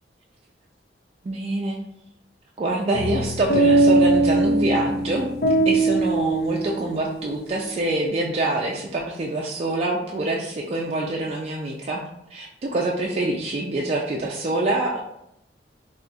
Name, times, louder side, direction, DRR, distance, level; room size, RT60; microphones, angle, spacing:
voice 1, 1.2-1.8 2.6-5.3 5.7-12.0 12.3-15.0, right 2 dB, 35° right, -1 dB, 0.3 m, -25 dB
sound 1, 2.9-7.3, right 2 dB, 65° left, 0.6 m, -20 dB
2.7 x 2.3 x 4.0 m, 0.80 s
head